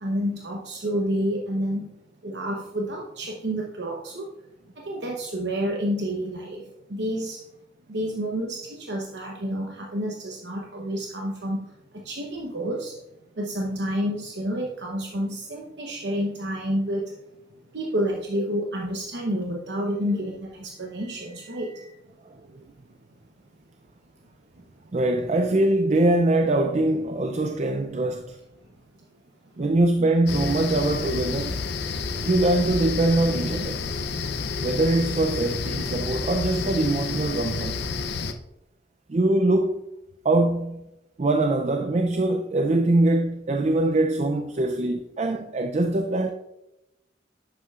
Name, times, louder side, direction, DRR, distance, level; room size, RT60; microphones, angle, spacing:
voice 1, 0.0-1.9 2.2-4.3 4.8-6.6 6.9-7.4 7.9-13.0 13.3-17.1 17.7-21.9 24.6-24.7, equal, 65° right, 0.9 m, -29 dB
voice 2, 24.9-28.4 29.6-31.6 32.2-33.9 34.6-37.8 39.1-39.8 40.2-40.8 41.2-46.3, right 2 dB, 35° right, 0.4 m, -23 dB
sound 1, 30.3-38.3, left 4 dB, 60° left, 0.6 m, -30 dB
11.0 x 7.9 x 2.4 m
head